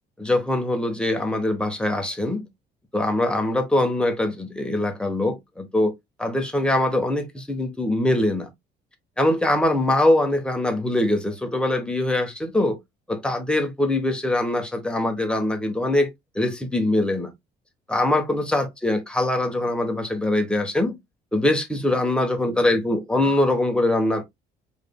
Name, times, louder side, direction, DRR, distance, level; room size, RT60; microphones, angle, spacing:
voice 1, 0.2-2.5 2.9-5.9 6.2-8.5 9.2-12.8 13.1-16.1 16.3-17.3 17.9-21.0 21.3-24.2, left 1 dB, 5° left, 1.2 m, -23 dB
4.8 x 3.4 x 2.3 m
cardioid pair, 110°, 17 cm